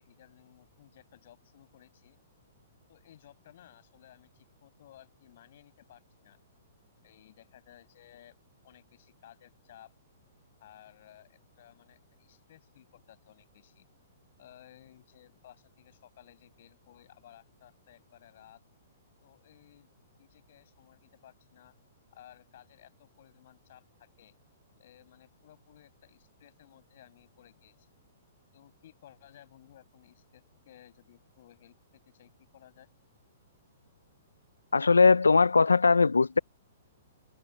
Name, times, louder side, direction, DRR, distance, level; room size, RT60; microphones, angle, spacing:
voice 1, 0.0-2.2 2.9-6.4 7.0-8.4 8.6-9.9 10.6-13.9 14.4-18.6 19.2-19.9 20.2-21.8 22.1-24.3 24.8-28.0 28.5-32.9, left 12 dB, 60° left, 7.1 m, -57 dB
voice 2, 34.7-36.4, left 4 dB, 90° left, 0.3 m, -20 dB
open air
hypercardioid pair, 120°, 0 cm